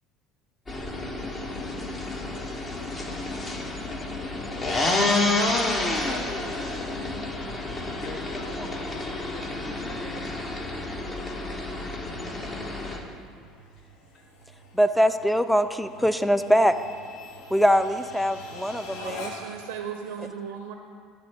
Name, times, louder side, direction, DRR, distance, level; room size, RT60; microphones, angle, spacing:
sound 1, 0.7-13.0, left 2 dB, 30° left, 0.8 m, -29 dB
voice 1, 7.5-10.3 13.8-14.2, left 2 dB, 50° left, 1 dB, 1.2 m, -43 dB
sound 2, 10.2-19.7, left 2 dB, 70° left, 0.8 m, -45 dB
voice 2, 14.7-16.8 17.5-19.3, equal, ahead, 10 dB, 0.3 m, -22 dB
voice 3, 19.0-20.7, right 7 dB, 75° right, 4 dB, 0.4 m, -36 dB
9.8 x 3.5 x 4.7 m, 2.1 s
hypercardioid pair, 70°, 0 cm